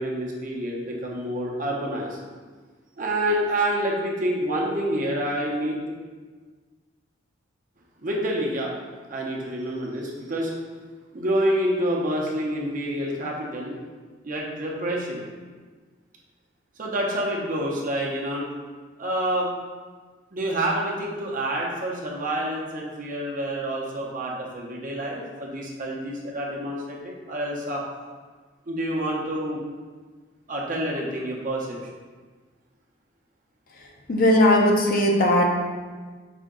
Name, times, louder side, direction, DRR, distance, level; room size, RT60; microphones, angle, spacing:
voice 1, 0.0-2.2 3.0-5.8 8.0-8.7 9.1-10.5 11.1-13.7 14.2-15.2 16.8-18.5 19.0-19.5 20.3-27.8 28.7-29.6 30.5-31.8, right 1 dB, 45° right, -2 dB, 0.7 m, -27 dB
voice 2, 34.1-35.6, left 1 dB, 45° left, 1 dB, 0.6 m, -18 dB
5.0 x 2.8 x 3.7 m, 1.4 s
head